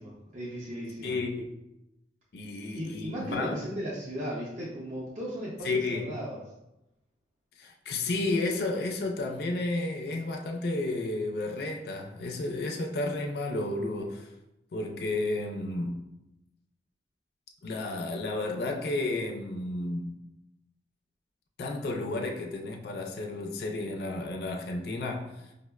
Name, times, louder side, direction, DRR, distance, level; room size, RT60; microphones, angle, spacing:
voice 1, 0.0-1.2 2.5-6.4, equal, 40° right, -6 dB, 0.5 m, -36 dB
voice 2, 1.0-1.6 2.3-3.6 5.6-6.0 7.6-14.3 14.7-16.0 17.6-20.1 21.6-25.3, left 2 dB, 60° left, 2 dB, 0.3 m, -32 dB
5.0 x 2.0 x 2.3 m, 0.91 s
head